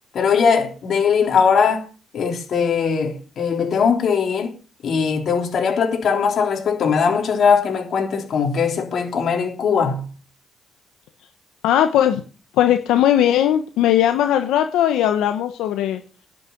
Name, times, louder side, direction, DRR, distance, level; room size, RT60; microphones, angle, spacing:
voice 1, 0.1-1.9 2.1-4.5 4.8-10.1, left 6 dB, 60° left, 3.7 m, -20 dB
voice 2, 11.6-12.2 12.6-16.0, left 11 dB, 90° left, 1.0 m, -18 dB
10.5 x 6.5 x 9.1 m
cardioid pair, 90°, 0 cm